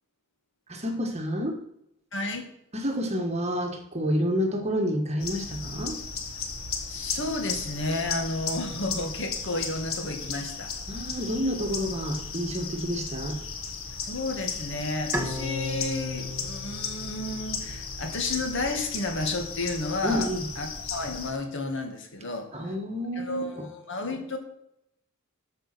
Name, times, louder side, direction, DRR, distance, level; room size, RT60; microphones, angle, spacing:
voice 1, 0.7-1.6 2.7-5.9 10.9-13.4 20.0-20.5 22.5-23.7, equal, 30° right, 4 dB, 1.7 m, -29 dB
voice 2, 2.1-2.5 6.9-10.7 14.0-20.3 20.6-22.8 23.2-24.4, left 2 dB, 60° left, 4 dB, 2.2 m, -32 dB
sound 1, 5.2-21.3, left 5 dB, 75° left, 1.6 m, -36 dB
Bowed string instrument, 15.1-18.4, left 2 dB, 10° right, 1.6 m, -35 dB
13.0 x 5.5 x 6.1 m, 0.77 s
head